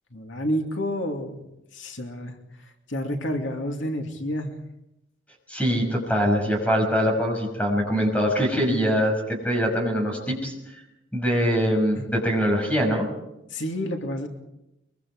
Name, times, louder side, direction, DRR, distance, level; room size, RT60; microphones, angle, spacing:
voice 1, 0.1-1.4 1.7-2.3 2.6-4.5 11.9-12.0 13.5-14.3, equal, 80° left, 3 dB, 2.7 m, -29 dB
voice 2, 5.5-10.8 11.1-13.1, equal, 5° left, 1 dB, 6.0 m, -23 dB
23.5 x 23.5 x 4.9 m, 0.89 s
head